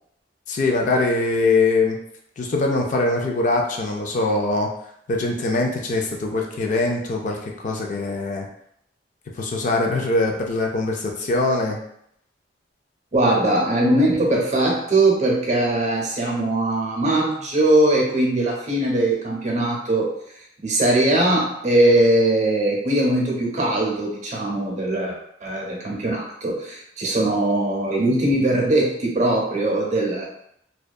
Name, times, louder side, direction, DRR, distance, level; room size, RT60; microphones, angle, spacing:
voice 1, 0.5-2.0 2.4-4.7 5.1-8.5 9.4-11.8, left 2 dB, 45° left, 1 dB, 0.4 m, -22 dB
voice 2, 13.1-20.1 20.6-30.3, right 1 dB, 40° right, -1 dB, 0.6 m, -20 dB
2.6 x 2.2 x 2.3 m, 0.73 s
head